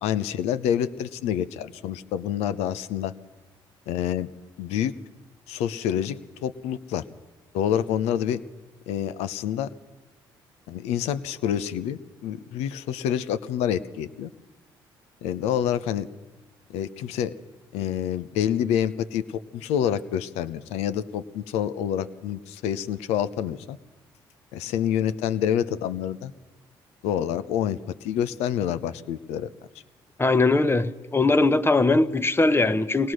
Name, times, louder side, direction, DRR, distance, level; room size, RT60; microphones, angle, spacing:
voice 1, 0.0-3.1 3.9-4.3 4.6-4.9 5.5-7.0 7.5-8.4 8.9-9.7 10.7-14.3 15.2-16.1 16.7-17.3 17.7-19.2 19.5-23.8 24.5-26.3 27.0-29.5, left 9 dB, 80° left, 14 dB, 0.8 m, -27 dB
voice 2, 30.2-33.1, left 3 dB, 20° left, 13 dB, 1.0 m, -20 dB
23.5 x 18.5 x 6.3 m, 1.2 s
hypercardioid pair, 55°, 11 cm